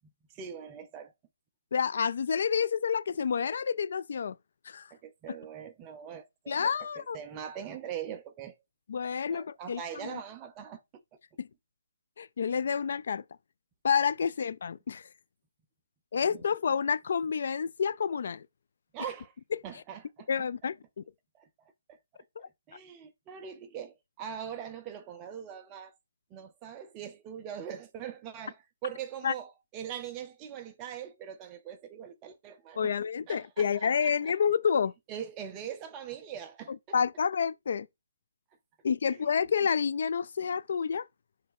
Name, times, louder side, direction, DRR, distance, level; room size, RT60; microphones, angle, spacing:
voice 1, 0.0-1.1 4.9-8.6 9.3-11.0 16.2-16.5 18.9-19.3 19.6-20.3 21.3-21.5 21.9-22.0 22.4-25.9 26.3-32.9 33.3-34.3 35.1-37.0 39.1-39.3, right 9 dB, 20° right, 0.7 m, -42 dB
voice 2, 1.7-4.4 4.6-4.9 6.5-7.2 8.9-10.2 11.4-11.5 12.2-13.2 13.8-15.1 16.1-18.5 20.3-21.0 22.4-22.5 29.2-29.3 32.8-34.9 36.9-37.9 38.8-41.1, left 6 dB, 55° left, 0.4 m, -29 dB
6.5 x 3.4 x 4.7 m
hypercardioid pair, 165°, 0 cm